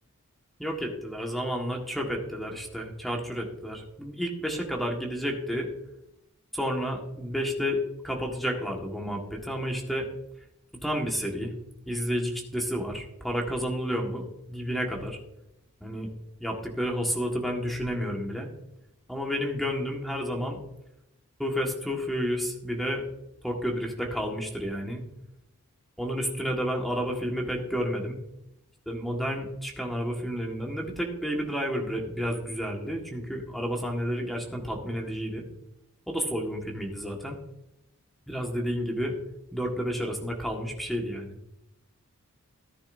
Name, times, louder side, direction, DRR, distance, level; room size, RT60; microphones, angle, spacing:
voice 1, 0.6-5.7 6.5-10.1 10.8-11.5 11.9-15.2 15.8-16.1 16.4-18.5 19.1-20.6 21.4-23.0 23.4-25.0 26.0-28.2 28.9-35.4 36.1-37.4 38.3-39.2 39.5-41.3, equal, ahead, 0 dB, 1.6 m, -31 dB
14.0 x 10.5 x 2.7 m, 0.86 s
head